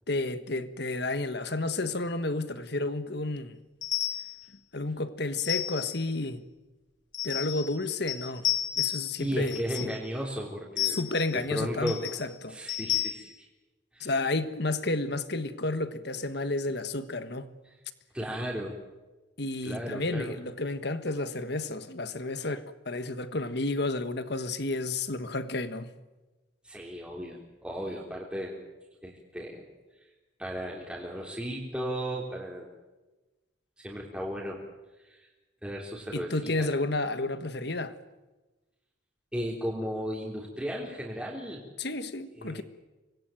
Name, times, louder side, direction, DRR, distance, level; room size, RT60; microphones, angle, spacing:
voice 1, 0.1-3.6 4.7-6.4 7.2-8.4 8.8-9.9 10.9-12.6 14.0-17.5 19.4-25.9 36.1-38.0 41.8-42.6, left 2 dB, 60° left, 1.5 m, -31 dB
sound 1, 3.8-4.4 5.4-6.0 7.1-7.8 8.1-9.2 9.5-10.0 10.8-11.4 11.9-12.2 12.7-13.1, left 13 dB, 75° left, 5.8 m, -32 dB
voice 2, 9.2-11.0 11.5-12.0 12.5-13.5 13.9-14.1 18.1-18.8 19.6-20.4 26.6-28.6 29.0-29.6 30.4-32.7 33.8-34.6 35.0-35.3 35.6-36.7 39.3-41.6 42.4-42.6, equal, 5° right, 3.5 m, -35 dB
25.0 x 20.5 x 9.2 m
head